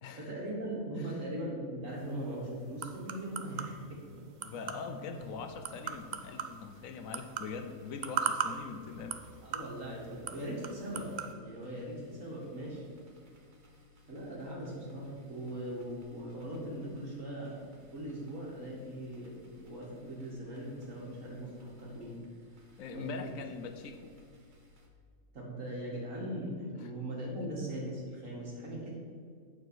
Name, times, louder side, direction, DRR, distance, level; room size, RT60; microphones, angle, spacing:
voice 1, 0.2-4.2 9.4-12.8 14.1-22.2 22.9-23.2 25.3-28.9, right 1 dB, 65° right, -3 dB, 2.4 m, -40 dB
voice 2, 1.0-1.3 4.4-9.2 22.8-24.1 26.8-26.9 27.4-27.6, left 5 dB, 75° left, 7 dB, 1.1 m, -42 dB
sound 1, 1.9-11.3, right 7 dB, 85° right, 0.4 m, -40 dB
sound 2, 5.1-24.9, left 2 dB, 35° right, 1.2 m, -62 dB
9.0 x 4.6 x 6.2 m, 2.2 s
omnidirectional pair, 1.5 m